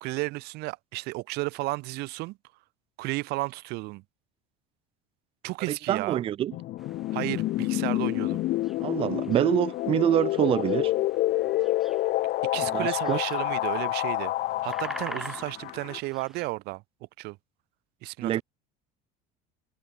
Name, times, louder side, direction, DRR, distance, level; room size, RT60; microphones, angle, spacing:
voice 1, 0.0-2.4 3.0-4.0 5.4-6.2 7.1-8.4 12.5-14.3 14.6-16.8 17.2-17.4 18.0-18.4, right 22 dB, 55° right, 1.8 m, -33 dB
voice 2, 5.7-6.5 8.8-10.9 12.7-13.2 18.2-18.4, right 11 dB, 30° right, 0.6 m, -26 dB
sound 1, 6.5-16.0, left 16 dB, 45° left, 2.9 m, -28 dB
sound 2, 6.8-16.5, equal, ahead, 6.5 m, -46 dB
cardioid pair, 160°, 20 cm